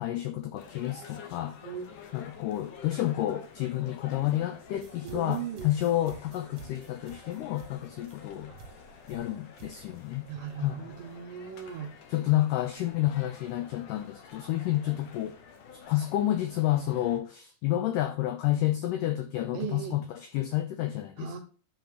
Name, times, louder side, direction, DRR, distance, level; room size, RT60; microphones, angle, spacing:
voice 1, 0.0-1.6 2.1-8.5 9.1-10.3 10.6-10.8 12.1-15.4 15.7-21.4, left 14 dB, 85° left, 1.8 m, -30 dB
sound 1, 0.6-17.2, left 6 dB, 65° left, 2.5 m, -50 dB
sound 2, 4.7-9.9, right 5 dB, 55° right, 1.6 m, -51 dB
voice 2, 5.0-5.7 8.5-8.6 10.3-11.9 19.5-20.0 21.2-21.4, right 8 dB, 75° right, 2.0 m, -37 dB
10.5 x 4.1 x 6.6 m
omnidirectional pair, 4.5 m